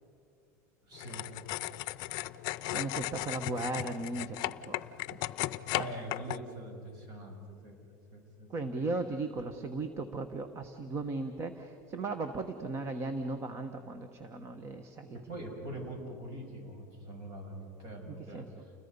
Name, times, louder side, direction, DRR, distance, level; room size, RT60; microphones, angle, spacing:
voice 1, 0.8-1.3 5.4-7.8 8.1-8.5 15.1-18.7, right 1 dB, 50° right, 2 dB, 6.7 m, -44 dB
sound 1, 0.9-6.4, left 17 dB, 55° left, 0.6 m, -36 dB
voice 2, 2.7-5.2 8.5-15.2 18.3-18.5, right 3 dB, 30° right, 8 dB, 1.2 m, -37 dB
30.0 x 21.0 x 5.5 m, 2.5 s
supercardioid pair, 135°, 9 cm